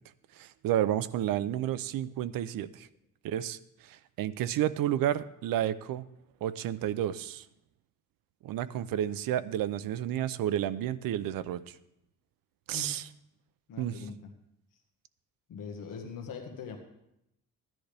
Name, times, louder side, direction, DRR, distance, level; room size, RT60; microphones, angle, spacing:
voice 1, 0.4-2.9 3.2-6.0 6.4-7.4 8.4-11.8 12.7-13.1 13.8-14.0, right 11 dB, 80° right, 14 dB, 0.6 m, -31 dB
voice 2, 13.7-14.2 15.5-16.8, left 6 dB, 70° left, 3 dB, 1.5 m, -41 dB
15.5 x 10.5 x 3.4 m, 0.82 s
cardioid pair, 140°, 33 cm